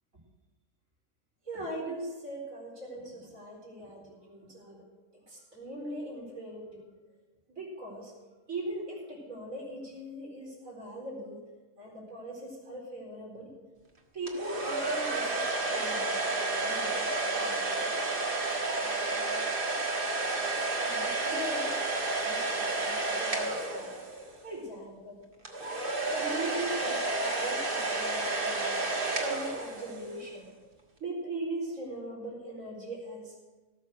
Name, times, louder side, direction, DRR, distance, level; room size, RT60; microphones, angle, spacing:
voice 1, 1.4-4.8 5.1-6.9 7.5-8.1 8.5-11.4 11.8-13.5 14.1-16.2 16.6-17.1 17.4-18.0 18.8-19.5 20.8-21.8 22.2-23.9 24.4-25.2 26.1-28.7 29.2-30.5 31.0-33.3, right 1 dB, 85° right, -4 dB, 4.7 m, -40 dB
sound 1, 14.3-24.4 25.4-30.2, right 2 dB, 40° right, 1.8 m, -31 dB
18.0 x 6.8 x 6.3 m, 1.2 s
omnidirectional pair, 1.4 m